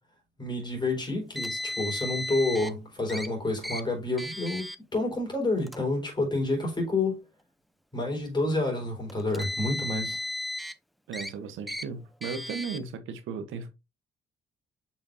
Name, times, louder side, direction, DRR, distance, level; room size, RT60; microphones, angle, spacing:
voice 1, 0.4-4.7 4.9-7.2 7.9-10.3, left 2 dB, 20° left, 4.3 m, -29 dB
Car, 1.3-2.7 3.1-3.3 3.6-3.8 4.2-4.8 5.6-5.8 6.7-6.8 9.1-10.7 11.1-11.3 11.7-11.8 12.2-12.8, left 1 dB, ahead, 0.6 m, -35 dB
voice 2, 11.1-13.7, right 6 dB, 85° right, 1.0 m, -36 dB
6.9 x 5.4 x 2.6 m
cardioid pair, 90°, 20 cm